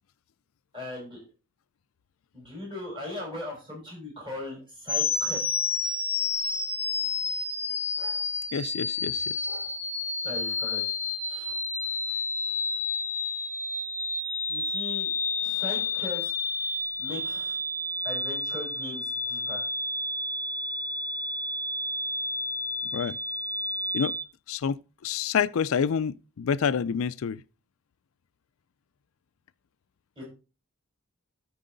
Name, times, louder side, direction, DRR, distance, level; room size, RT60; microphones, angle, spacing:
voice 1, 0.7-1.2 2.3-5.8 10.2-10.8 11.3-11.6 14.5-15.1 15.4-16.3 17.0-17.6 18.0-19.7 30.2-30.3, left 2 dB, 25° right, 5.2 m, -39 dB
sound 1, 4.9-24.2, left 3 dB, 10° left, 0.7 m, -30 dB
voice 2, 8.5-9.7 22.9-23.2 23.9-24.1 24.5-27.4, left 7 dB, 65° left, 0.4 m, -28 dB
13.0 x 4.6 x 3.9 m
head